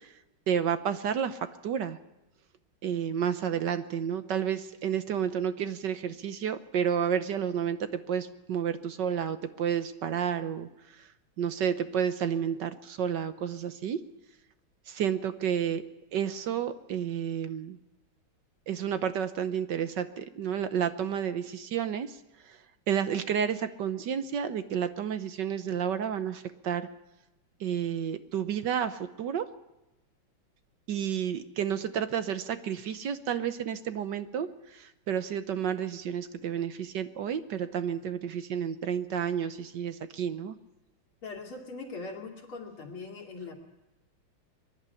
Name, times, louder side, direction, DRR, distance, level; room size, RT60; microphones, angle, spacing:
voice 1, 0.5-2.0 2.8-10.7 11.4-14.0 14.9-15.8 16.1-17.8 18.7-22.2 22.9-26.9 27.6-29.5 30.9-40.6, right 8 dB, 65° right, 11 dB, 1.4 m, -31 dB
voice 2, 41.2-43.5, left 3 dB, 80° left, 1 dB, 3.5 m, -41 dB
23.0 x 11.5 x 9.8 m, 0.95 s
omnidirectional pair, 2.3 m